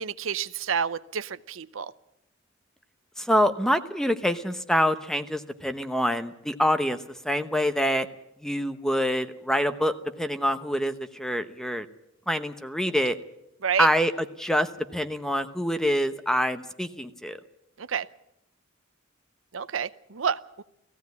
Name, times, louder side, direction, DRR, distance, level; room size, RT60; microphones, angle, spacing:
voice 1, 0.0-1.9 13.6-13.9 17.8-18.1 19.5-20.6, right 7 dB, 75° right, 14 dB, 0.7 m, -29 dB
voice 2, 3.2-8.1 8.4-11.9 12.3-13.2 13.8-17.4, equal, 5° left, 9 dB, 1.0 m, -26 dB
17.5 x 15.5 x 9.5 m, 0.81 s
head